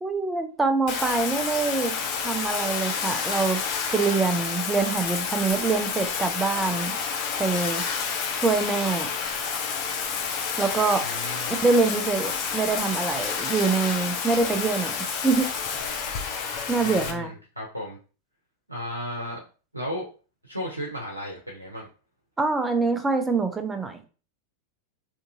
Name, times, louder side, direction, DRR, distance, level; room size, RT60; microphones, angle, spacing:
voice 1, 0.0-1.9 2.2-3.6 3.9-7.0 7.4-7.8 8.4-9.1 10.6-11.0 11.6-15.5 16.7-17.3 22.4-24.0, right 4 dB, 10° right, 7 dB, 0.5 m, -25 dB
Bathtub (filling or washing), 0.9-17.1, left 6 dB, 40° left, 0.7 m, -29 dB
voice 2, 11.0-11.6 16.8-18.0 18.7-19.4 19.7-20.1 20.4-21.9, equal, 85° right, -3 dB, 0.7 m, -34 dB
3.5 x 2.8 x 2.7 m, 0.36 s
figure-of-eight pair, 90°, 0 cm